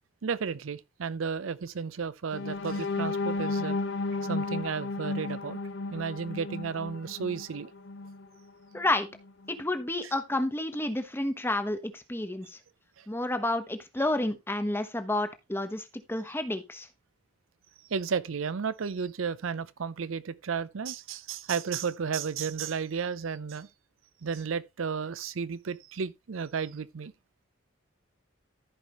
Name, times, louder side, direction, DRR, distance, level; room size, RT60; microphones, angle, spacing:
voice 1, 0.2-3.8 4.2-5.6 5.9-7.7 13.0-13.1 17.9-23.7 24.2-27.1, right 6 dB, 90° right, 0.5 m, -33 dB
sound 1, 2.3-8.3 8.7-8.9 9.3-9.5, left 3 dB, 65° left, 0.7 m, -33 dB
voice 2, 8.7-9.1 9.5-12.6 13.1-16.9, left 1 dB, 10° left, 1.0 m, -30 dB
14.5 x 5.0 x 3.0 m
head